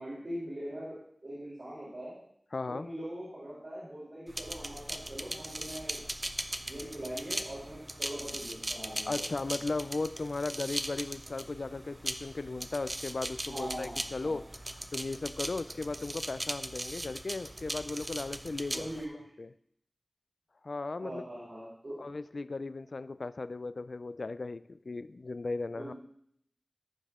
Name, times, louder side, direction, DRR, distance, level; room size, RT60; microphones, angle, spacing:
voice 1, 0.0-2.2 2.6-6.0 6.7-9.2 13.5-14.4 18.7-19.1 21.0-22.0 25.8-25.9, right 1 dB, 70° right, -8 dB, 3.5 m, -42 dB
voice 2, 2.5-2.9 9.1-14.5 14.9-18.9 19.4-19.5 20.6-21.2 22.0-25.9, left 3 dB, 80° left, 15 dB, 0.3 m, -36 dB
sound 1, 4.3-19.0, right 1 dB, 35° right, 0.7 m, -39 dB
14.0 x 5.4 x 3.7 m, 0.71 s
wide cardioid pair, 60°, 0 cm